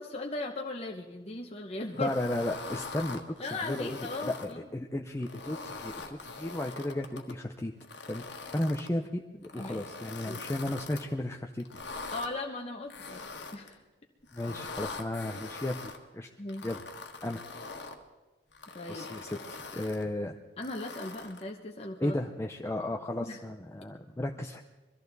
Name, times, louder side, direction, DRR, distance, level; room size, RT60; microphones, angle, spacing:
voice 1, 0.0-2.1 3.4-4.6 9.6-9.8 10.3-10.4 12.1-13.3 13.5-13.8 16.4-16.7 18.7-19.1 20.6-22.2 23.2-23.4, left 2 dB, 35° left, 1 dB, 1.0 m, -38 dB
sound 1, 2.0-4.5 5.1-7.3 7.8-8.9 9.4-11.1 11.6-12.3 12.9-13.7 14.3-16.0 16.5-18.0 18.5-20.0 20.6-21.5, left 3 dB, 65° left, 1.5 m, -43 dB
voice 2, 2.0-7.7 8.1-11.7 14.3-16.3 16.6-16.8 17.2-17.4 18.9-20.4 22.0-24.6, left 1 dB, 15° left, 2 dB, 0.6 m, -34 dB
22.5 x 14.0 x 4.0 m, 1.2 s
head